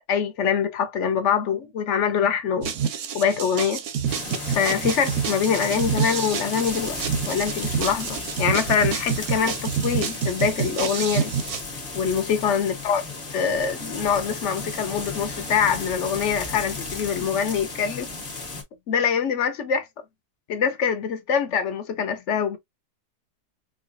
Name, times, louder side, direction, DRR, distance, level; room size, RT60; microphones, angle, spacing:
voice 1, 0.1-2.7 3.1-3.8 4.5-7.0 7.3-11.3 11.9-13.0 13.3-18.1 18.9-19.9 20.5-22.6, left 7 dB, 55° left, 0.9 m, -24 dB
sound 1, 2.6-11.6, right 8 dB, 65° right, 0.9 m, -28 dB
sound 2, 4.1-18.6, left 3 dB, 35° left, 1.3 m, -34 dB
4.8 x 2.3 x 2.5 m
omnidirectional pair, 1.7 m